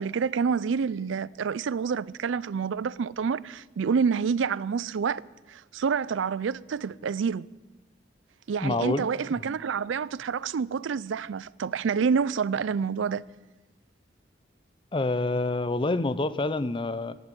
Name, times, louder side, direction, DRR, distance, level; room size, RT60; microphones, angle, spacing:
voice 1, 0.0-5.2 5.5-7.5 8.5-13.3, right 6 dB, 85° right, 0.4 m, -28 dB
voice 2, 8.6-9.1 9.4-9.5 14.9-17.2, left 2 dB, 25° left, 0.5 m, -27 dB
16.0 x 7.9 x 9.0 m
head